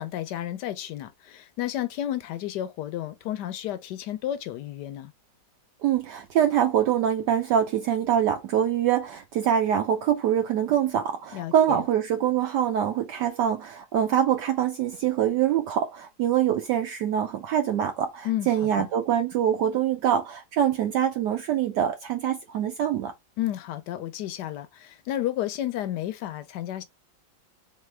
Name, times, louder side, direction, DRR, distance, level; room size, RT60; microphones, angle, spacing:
voice 1, 0.0-5.1 11.3-11.8 18.2-18.9 23.4-26.8, left 12 dB, 75° left, 1.1 m, -32 dB
voice 2, 5.8-23.1, right 9 dB, 75° right, 1.1 m, -24 dB
3.5 x 3.3 x 3.2 m
omnidirectional pair, 2.0 m